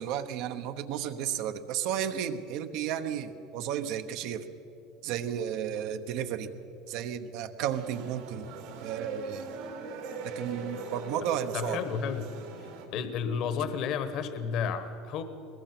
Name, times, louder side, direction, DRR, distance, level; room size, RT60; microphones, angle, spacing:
voice 1, 0.0-4.5 5.0-6.5 6.9-9.5 10.2-11.8, right 9 dB, 60° right, 9 dB, 1.1 m, -33 dB
sound 1, 7.7-12.8, right 3 dB, 80° right, 3.8 m, -41 dB
voice 2, 11.5-12.3 12.6-15.2, left 6 dB, 50° left, 10 dB, 1.2 m, -32 dB
21.5 x 20.5 x 6.1 m, 2.8 s
cardioid pair, 150°, 0 cm